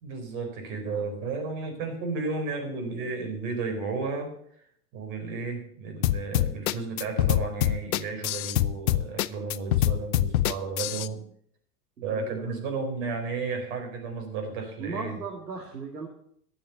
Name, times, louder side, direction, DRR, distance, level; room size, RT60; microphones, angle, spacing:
voice 1, 0.0-4.3 4.9-11.2 12.0-15.1, right 4 dB, 50° right, 4 dB, 4.6 m, -33 dB
sound 1, 6.0-11.1, left 14 dB, 65° left, 0.7 m, -24 dB
voice 2, 12.1-12.6 14.8-16.1, right 4 dB, 85° right, 1 dB, 2.4 m, -37 dB
12.5 x 7.3 x 8.0 m, 0.65 s
hypercardioid pair, 95°, 47 cm